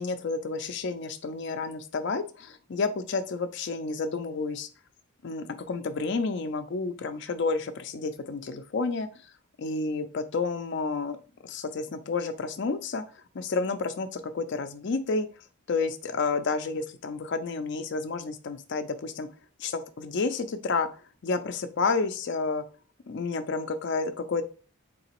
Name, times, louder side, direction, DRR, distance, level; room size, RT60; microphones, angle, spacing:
voice 1, 0.0-4.7 5.2-9.1 9.6-11.2 11.4-13.0 13.3-15.3 15.7-19.3 19.6-20.9 21.2-22.6 23.1-24.5, left 4 dB, 55° left, 9 dB, 0.4 m, -30 dB
3.9 x 2.8 x 2.9 m, 0.35 s
head